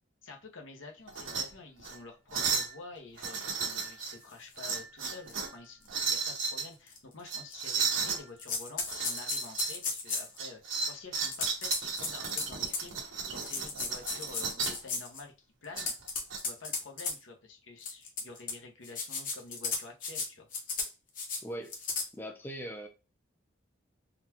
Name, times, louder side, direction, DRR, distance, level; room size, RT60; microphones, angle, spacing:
voice 1, 0.2-15.3 15.6-15.9 16.4-20.5, left 3 dB, 75° left, 2 dB, 0.9 m, -49 dB
sound 1, 1.1-1.4 1.8-2.0 2.3-2.7 3.2-4.1 4.6-5.5 5.9-6.7 7.3-8.2 8.9-9.8 10.1-14.8 15.7-16.4, right 5 dB, 85° right, 1.1 m, -34 dB
sound 2, 4.6-4.7 5.3-5.4 5.9-6.0 6.9-7.0 7.5-8.1 8.4-10.4 11.3-12.9 13.4-15.2 15.6-17.1 17.8-18.5 18.8-20.3 20.5-20.9 21.2-21.4 21.7-22.1, left 4 dB, 45° left, 0.8 m, -35 dB
voice 2, 21.4-21.8 22.1-22.9, equal, 10° left, 3 dB, 0.4 m, -40 dB
3.9 x 2.3 x 2.9 m, 0.30 s
head